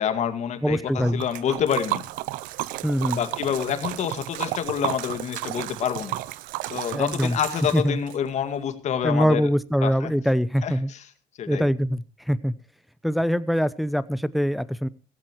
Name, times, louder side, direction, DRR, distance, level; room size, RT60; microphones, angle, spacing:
voice 1, 0.0-2.0 3.1-6.2 6.6-9.4 9.8-10.1 10.6-11.0 11.4-11.7, left 8 dB, 60° left, 10 dB, 2.1 m, -27 dB
voice 2, 0.6-1.2 2.8-3.2 6.9-7.4 7.7-8.0 9.0-10.9 11.5-12.5 13.0-14.9, equal, ahead, 15 dB, 0.8 m, -23 dB
Liquid, 1.0-8.2, right 17 dB, 90° right, 0.7 m, -32 dB
16.5 x 15.0 x 3.0 m, 0.35 s
cardioid pair, 100°, 13 cm